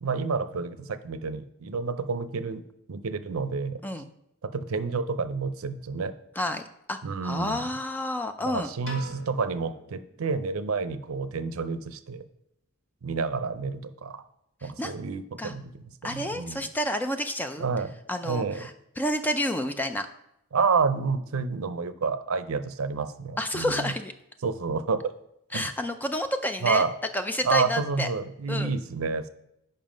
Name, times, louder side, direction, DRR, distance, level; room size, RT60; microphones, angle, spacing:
voice 1, 0.0-2.6 2.9-3.8 4.4-6.1 7.0-7.6 8.4-12.2 13.0-14.2 14.6-15.7 16.0-16.7 17.6-17.9 18.2-18.6 20.5-23.9 24.4-25.1 25.5-25.7 26.6-26.9 27.4-29.3, right 4 dB, 75° right, 11 dB, 0.5 m, -29 dB
voice 2, 6.4-8.7 14.6-15.0 15.4-15.5 16.0-17.7 18.1-20.1 23.4-24.1 25.5-26.9 27.1-28.1 28.5-28.7, left 1 dB, 10° left, 8 dB, 0.4 m, -30 dB
Piano, 8.8-11.1, equal, 65° left, 2.0 m, -44 dB
7.2 x 5.5 x 5.1 m, 0.80 s
head